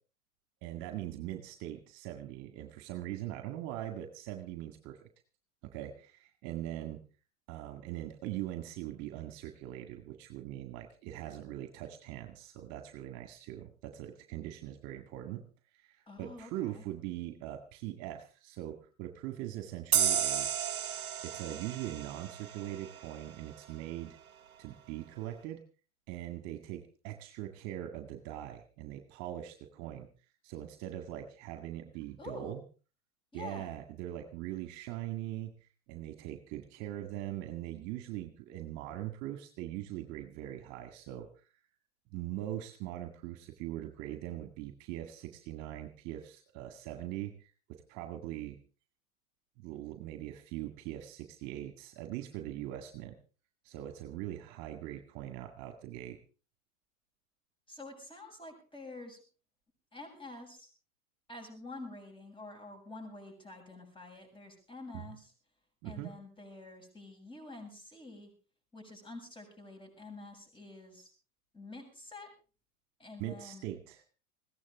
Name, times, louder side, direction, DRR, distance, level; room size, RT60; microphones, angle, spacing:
voice 1, 0.6-5.0 5.6-7.0 7.5-15.4 15.8-20.6 21.2-24.2 24.6-25.6 26.1-30.1 30.4-32.6 33.3-35.5 35.9-41.4 42.1-48.6 49.6-53.1 53.6-56.2 64.9-65.0 65.8-66.1 73.2-74.0, right 13 dB, 40° right, 7 dB, 1.9 m, -41 dB
voice 2, 16.1-16.8 32.2-32.5 33.3-33.7 57.7-59.2 59.9-60.7 61.3-65.3 65.8-68.3 68.7-71.1 71.5-72.3 73.0-73.7, left 2 dB, 10° left, 4 dB, 7.7 m, -48 dB
sound 1, 19.9-23.3, right 8 dB, 80° right, 0.9 m, -32 dB
21.0 x 16.5 x 3.6 m, 0.37 s
figure-of-eight pair, 95°, 42 cm